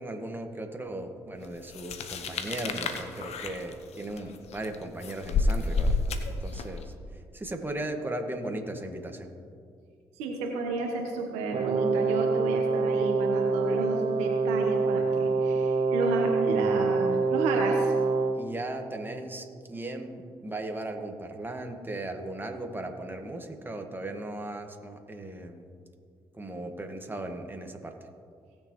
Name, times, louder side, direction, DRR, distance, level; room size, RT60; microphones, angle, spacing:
voice 1, 0.0-9.3 18.3-25.7 26.3-28.0, right 1 dB, 20° right, 3 dB, 1.7 m, -37 dB
sound 1, 1.7-6.8, left 3 dB, 70° left, 1.0 m, -30 dB
voice 2, 10.2-17.9, right 3 dB, 85° right, 1 dB, 1.3 m, -32 dB
Brass instrument, 11.5-18.4, right 4 dB, 55° right, 1.1 m, -26 dB
18.5 x 6.9 x 3.2 m, 2.3 s
hypercardioid pair, 45°, 11 cm